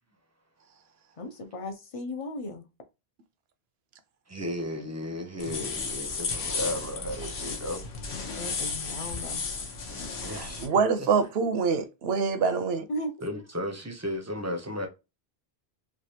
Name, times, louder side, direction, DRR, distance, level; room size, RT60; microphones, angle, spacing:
voice 1, 1.2-2.7 8.4-9.4 12.9-13.1, left 1 dB, 40° left, 0.5 m, -36 dB
voice 2, 4.3-7.8 9.9-11.1 13.2-14.9, left 1 dB, 20° right, 0.5 m, -35 dB
sound 1, 5.4-10.7, left 4 dB, 85° left, 1.1 m, -34 dB
voice 3, 10.2-12.8, right 5 dB, 80° right, 0.8 m, -26 dB
3.3 x 2.4 x 2.7 m
omnidirectional pair, 1.0 m